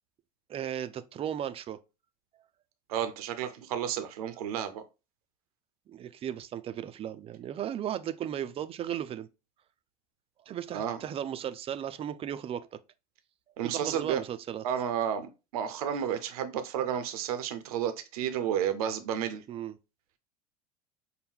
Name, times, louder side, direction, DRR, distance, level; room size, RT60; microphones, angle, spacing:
voice 1, 0.5-1.8 5.9-9.3 10.5-12.7 13.6-14.6 19.5-19.8, right 10 dB, 30° right, 0.4 m, -36 dB
voice 2, 2.9-4.8 10.7-11.0 13.6-14.2 14.6-19.4, right 9 dB, 70° right, 0.6 m, -31 dB
5.4 x 2.1 x 3.5 m
hypercardioid pair, 80°, 19 cm